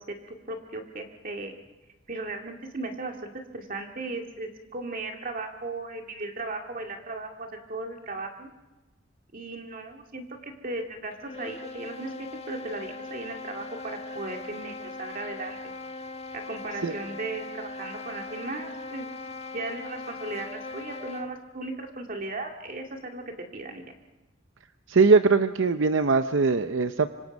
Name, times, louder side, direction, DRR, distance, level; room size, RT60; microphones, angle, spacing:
voice 1, 0.0-1.5 2.1-8.5 9.3-15.7 16.3-19.1 19.5-23.9, right 2 dB, 50° right, 3 dB, 2.1 m, -36 dB
sound 1, 11.1-21.4, left 3 dB, 35° left, 1.3 m, -40 dB
voice 2, 24.9-27.1, right 4 dB, 75° right, 9 dB, 0.7 m, -21 dB
26.0 x 25.5 x 5.3 m, 1.1 s
head